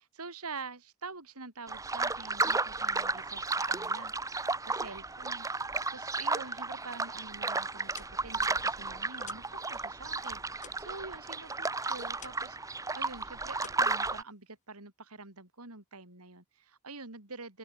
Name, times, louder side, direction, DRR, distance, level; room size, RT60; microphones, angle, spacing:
voice 1, 0.0-17.6, right 3 dB, 85° right, 4.4 m, -46 dB
sound 1, 1.7-14.2, right 3 dB, 15° right, 0.9 m, -33 dB
sound 2, 7.9-9.6 9.9-12.6 12.9-13.2 13.6-14.7, left 8 dB, 35° left, 2.7 m, -53 dB
open air
head